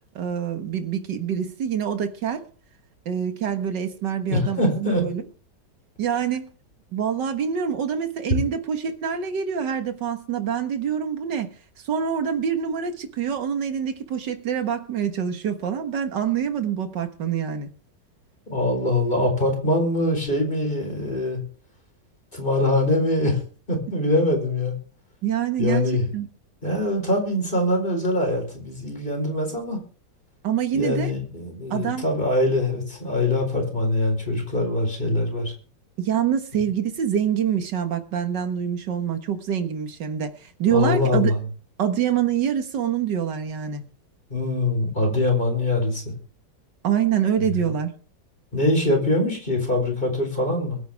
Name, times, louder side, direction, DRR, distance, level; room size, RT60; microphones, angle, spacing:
voice 1, 0.2-2.4 3.1-5.2 6.0-6.5 6.9-11.5 11.9-17.7 25.2-26.3 30.4-31.1 31.7-32.0 36.0-41.3 41.8-43.8 46.8-47.9, right 8 dB, 80° right, 2.1 m, -25 dB
voice 2, 4.3-5.0 18.5-21.4 22.3-23.4 23.7-24.7 25.6-26.1 26.6-29.8 30.7-35.5 40.7-41.4 44.3-46.2 48.5-50.8, left 1 dB, 30° left, 4.5 m, -23 dB
22.0 x 9.3 x 3.5 m
omnidirectional pair, 1.9 m